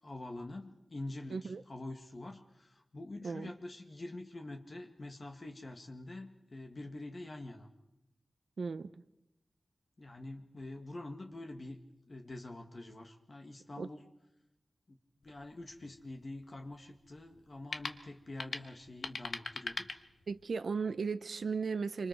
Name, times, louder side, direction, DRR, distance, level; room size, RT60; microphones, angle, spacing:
voice 1, 0.0-7.7 10.0-11.8 12.1-14.1 14.9-15.0 15.2-20.0, left 2 dB, 45° left, 1.8 m, -46 dB
voice 2, 1.3-1.6 3.2-3.5 8.6-8.9 13.8-13.9 20.3-22.1, right 5 dB, 80° right, 0.7 m, -36 dB
sound 1, 15.2-20.6, left 3 dB, 70° left, 1.3 m, -44 dB
26.5 x 26.0 x 4.6 m
wide cardioid pair, 90°, 0 cm